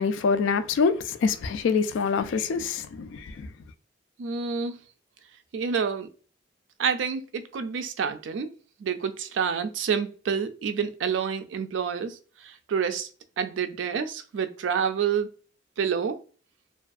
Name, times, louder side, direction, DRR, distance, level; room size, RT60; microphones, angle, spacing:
voice 1, 0.0-3.5, left 5 dB, 85° left, 0.3 m, -25 dB
voice 2, 4.2-4.7 5.5-6.1 6.8-8.5 8.8-12.2 12.4-13.1 13.4-15.3 15.8-16.2, right 6 dB, 75° right, 0.3 m, -28 dB
2.5 x 2.3 x 2.3 m
head